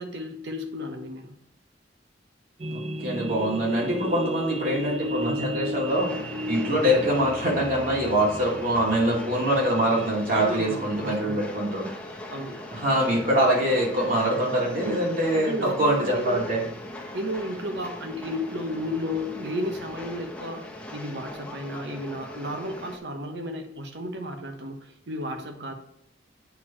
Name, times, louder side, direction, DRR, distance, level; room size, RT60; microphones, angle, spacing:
voice 1, 0.0-1.4 10.3-11.4 12.3-12.6 15.4-16.5 17.1-20.6 20.9-25.7, left 1 dB, 75° right, 5 dB, 1.1 m, -33 dB
sound 1, 2.6-10.1, equal, 35° right, 0.5 m, -34 dB
voice 2, 2.7-6.1 6.5-11.9 12.7-16.6, equal, 55° right, -3 dB, 2.4 m, -24 dB
Train, 5.9-23.0, left 1 dB, 5° left, 0.9 m, -40 dB
8.2 x 4.5 x 4.5 m, 0.75 s
head